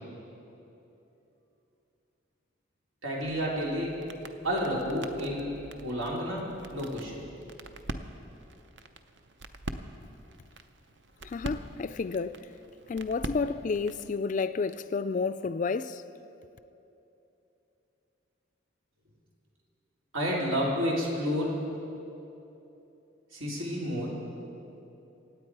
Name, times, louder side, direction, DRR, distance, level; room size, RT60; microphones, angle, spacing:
voice 1, 3.0-4.0 4.4-6.4 6.7-7.2 20.1-21.5 23.3-24.2, equal, 90° right, 3.3 m, -30 dB
sound 1, 3.2-14.1, right 2 dB, 60° right, 0.7 m, -44 dB
voice 2, 11.2-12.5 12.9-16.0, left 4 dB, 40° left, 0.3 m, -31 dB
25.5 x 9.0 x 4.7 m
head